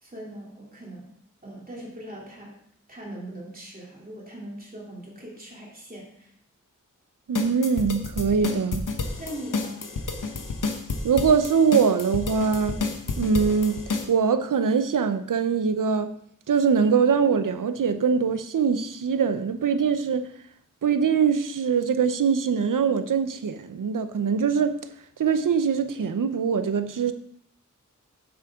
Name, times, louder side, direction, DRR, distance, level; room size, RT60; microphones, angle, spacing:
voice 1, 0.0-1.1 1.4-2.6 2.9-6.3 9.2-9.8, right 1 dB, 25° right, 3.0 m, -40 dB
sound 1, 7.3-14.1, left 4 dB, 75° left, 1.1 m, -30 dB
voice 2, 7.3-8.9 11.0-12.8 13.2-13.8 14.1-16.1 16.5-20.3 20.8-24.8 25.2-27.1, right 6 dB, 80° right, 0.7 m, -23 dB
9.8 x 7.3 x 3.7 m
wide cardioid pair, 100°, 32 cm